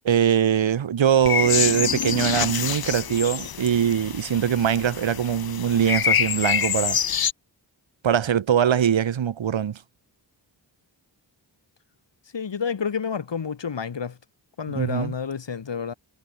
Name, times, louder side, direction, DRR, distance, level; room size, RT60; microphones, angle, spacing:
voice 1, 0.0-7.0 8.0-9.8 14.7-15.1, right 9 dB, 85° right, 1.2 m, -22 dB
sound 1, 1.2-7.3, left 9 dB, 55° left, 0.7 m, -26 dB
voice 2, 12.3-14.2 14.6-15.9, left 6 dB, 70° left, 2.3 m, -29 dB
cardioid pair, 50°, 44 cm